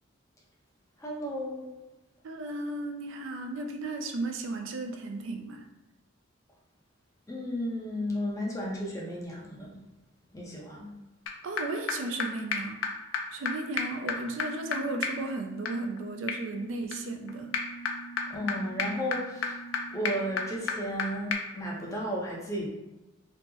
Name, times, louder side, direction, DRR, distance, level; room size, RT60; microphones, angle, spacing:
voice 1, 1.0-1.7 7.3-9.8 10.3-11.0 18.3-19.6 19.9-22.7, equal, 15° left, -3 dB, 0.6 m, -34 dB
voice 2, 2.2-5.6 11.4-12.8 13.3-17.5, right 2 dB, 70° right, 4 dB, 0.4 m, -35 dB
sound 1, 11.3-11.4 11.6-11.7 11.9-12.0 12.2-12.3 12.5-12.6 12.8-12.9 13.1-13.2 13.4-13.5 13.8-21.0 21.3-21.4, left 5 dB, 75° left, 0.4 m, -34 dB
2.9 x 2.0 x 3.5 m, 1.0 s
head